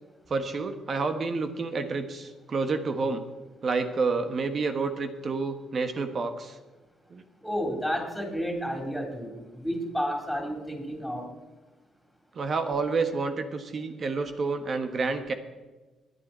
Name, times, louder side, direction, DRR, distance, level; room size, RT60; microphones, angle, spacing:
voice 1, 0.3-3.2 3.6-6.6 7.1-7.2 12.3-15.3, right 4 dB, 45° right, 8 dB, 1.3 m, -29 dB
voice 2, 7.4-11.3, equal, ahead, 1 dB, 3.8 m, -31 dB
21.0 x 9.5 x 4.4 m, 1.2 s
cardioid pair, 90°, 0 cm